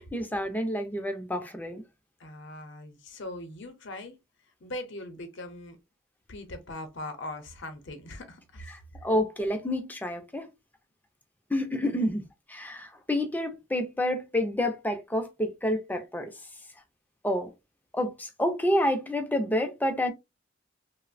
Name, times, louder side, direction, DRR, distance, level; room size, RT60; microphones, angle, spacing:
voice 1, 0.0-1.8 8.7-10.5 11.5-12.2 12.5-16.3 17.2-17.5 17.9-20.1, left 1 dB, 10° left, 0.4 m, -29 dB
voice 2, 2.2-4.2 4.6-5.8 6.3-8.7 11.9-12.1, left 1 dB, 60° left, 0.7 m, -40 dB
3.0 x 2.0 x 2.4 m
head